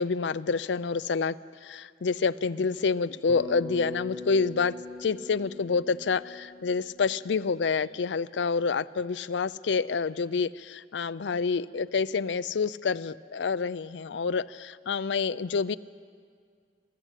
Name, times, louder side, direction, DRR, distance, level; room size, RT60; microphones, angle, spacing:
voice 1, 0.0-1.4 1.6-4.7 5.0-15.8, left 5 dB, 90° left, 17 dB, 0.5 m, -28 dB
Bass guitar, 3.3-7.7, left 3 dB, 5° left, 4.1 m, -41 dB
24.0 x 14.0 x 8.2 m, 2.1 s
head